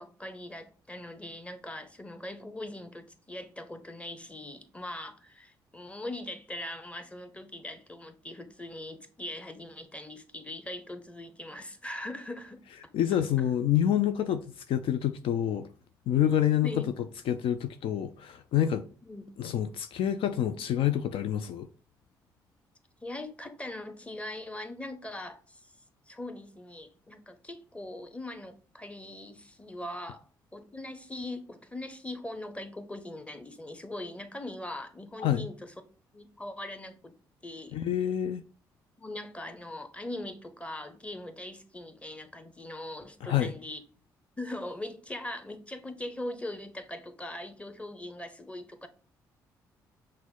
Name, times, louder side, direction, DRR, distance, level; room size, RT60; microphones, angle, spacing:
voice 1, 0.0-12.6 16.6-16.9 19.0-19.3 23.0-25.6 26.1-30.3 30.5-35.7 36.1-37.1 37.4-37.8 39.0-43.8 44.4-48.9, left 1 dB, 10° left, 0.9 m, -41 dB
voice 2, 12.9-15.7 16.1-16.9 17.3-18.9 19.4-21.7 35.2-35.5 37.7-38.4 43.2-43.5, left 10 dB, 65° left, 0.4 m, -27 dB
5.9 x 2.1 x 3.8 m
hypercardioid pair, 50°, 10 cm